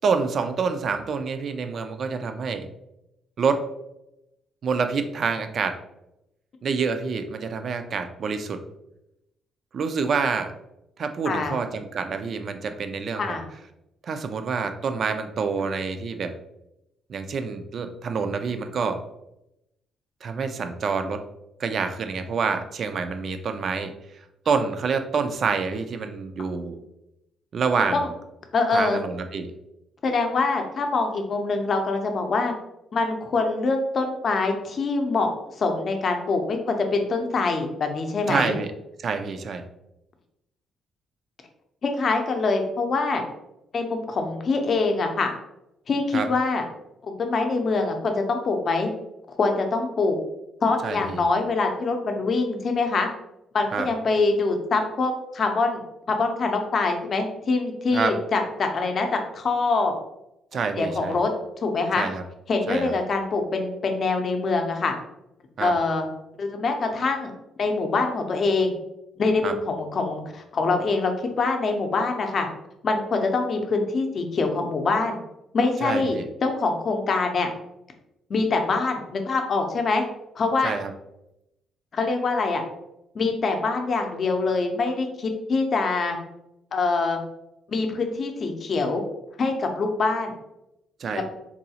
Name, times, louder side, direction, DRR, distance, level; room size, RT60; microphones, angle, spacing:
voice 1, 0.0-2.7 3.4-3.6 4.6-5.8 6.6-8.6 9.7-10.5 11.0-13.4 14.0-16.3 17.1-19.0 20.2-21.2 21.6-26.8 27.5-28.1 28.7-29.5 38.3-38.7 39.0-39.6 46.1-46.3 50.8-51.2 53.7-53.9 57.9-58.1 60.5-61.2 62.0-62.2 62.7-62.9 65.6-65.7 69.4-69.5 75.8-76.2 80.6-80.9 91.0-91.2, right 5 dB, 50° right, 8 dB, 0.4 m, -27 dB
voice 2, 11.3-11.6 13.2-13.4 27.9-28.1 28.5-29.0 30.0-32.5 32.9-35.3 35.6-38.5 41.8-43.2 43.7-45.3 45.9-46.6 47.0-48.9 49.4-50.2 50.6-53.1 53.5-59.9 60.8-61.3 61.6-62.1 62.5-64.9 65.6-66.0 66.4-67.3 67.6-68.7 69.2-72.5 72.8-75.2 75.5-77.5 78.3-80.0 80.4-80.7 81.9-82.6 83.1-86.2 86.7-87.2 87.7-89.0 89.4-90.3 91.1-91.2, left 3 dB, 45° left, 4 dB, 0.6 m, -24 dB
3.9 x 2.3 x 2.8 m, 0.86 s
cardioid pair, 115°, 0 cm